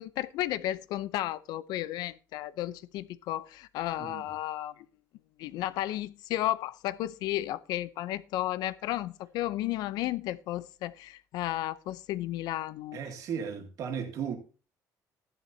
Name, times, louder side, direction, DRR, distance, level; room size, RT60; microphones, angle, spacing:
voice 1, 0.0-4.9 5.4-13.0, left 14 dB, 80° left, 0.7 m, -33 dB
voice 2, 12.9-14.4, right 7 dB, 55° right, 2.2 m, -35 dB
13.5 x 11.0 x 2.8 m
cardioid pair, 175°, 7 cm